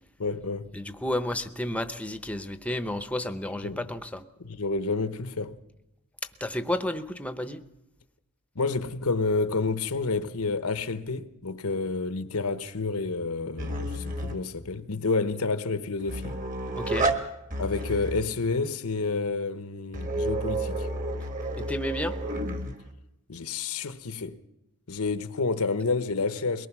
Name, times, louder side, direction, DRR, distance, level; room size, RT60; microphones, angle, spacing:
voice 1, 0.2-0.7 3.6-3.8 4.4-5.6 8.5-16.4 17.6-20.9 23.3-24.4 24.9-26.7, left 3 dB, 80° left, 1.0 m, -29 dB
voice 2, 0.7-4.2 6.4-7.6 16.8-17.1 21.6-22.2, left 1 dB, 5° left, 0.8 m, -31 dB
sound 1, 13.6-14.4 16.0-17.2 17.5-18.3 19.9-22.8, right 1 dB, 40° right, 1.9 m, -30 dB
22.5 x 18.5 x 6.1 m
head